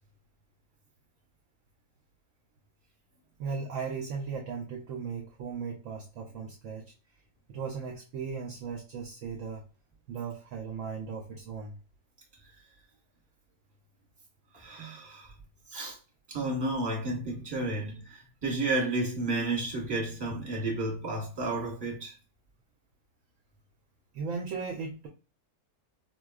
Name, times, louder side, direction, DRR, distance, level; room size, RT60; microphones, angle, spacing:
voice 1, 3.4-6.9 7.5-9.7 10.1-11.8 24.1-25.1, right 5 dB, 70° right, 0.8 m, -37 dB
voice 2, 14.5-15.3 15.7-16.0 16.3-22.1, right 2 dB, 20° right, 1.0 m, -32 dB
4.1 x 2.2 x 2.3 m
omnidirectional pair, 1.7 m